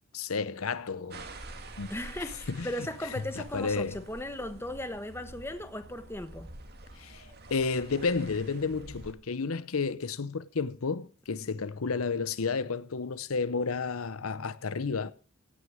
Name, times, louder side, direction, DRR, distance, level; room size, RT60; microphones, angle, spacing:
voice 1, 0.1-1.3 1.8-1.9 2.5-4.0 7.0-15.1, left 4 dB, 90° left, 0.8 m, -32 dB
sound 1, 1.1-9.1, right 2 dB, 50° right, 2.2 m, -47 dB
voice 2, 1.9-6.5, left 1 dB, 10° left, 1.2 m, -37 dB
17.0 x 6.5 x 7.4 m
head